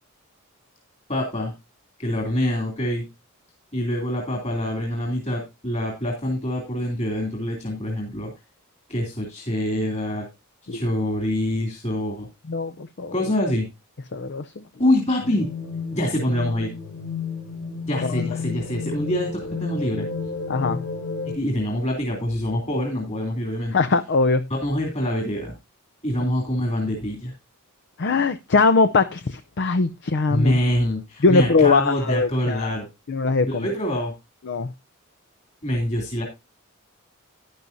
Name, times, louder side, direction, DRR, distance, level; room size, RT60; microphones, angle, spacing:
voice 1, 1.1-1.5 2.0-3.0 3.7-8.3 8.9-10.3 10.7-12.3 13.1-13.7 14.8-15.5 15.9-16.7 17.9-20.1 21.3-23.8 24.6-25.5 26.0-27.3 30.3-32.9 33.5-34.1 35.6-36.3, left 1 dB, 35° left, 2.9 m, -25 dB
voice 2, 12.5-13.1 14.1-14.6 18.0-18.3 20.5-20.8 23.7-24.4 28.0-30.6 31.2-32.7 33.1-33.7 34.5-34.7, left 4 dB, 55° left, 0.6 m, -21 dB
sound 1, 15.2-21.4, left 5 dB, 70° left, 4.8 m, -31 dB
12.0 x 10.5 x 2.7 m
head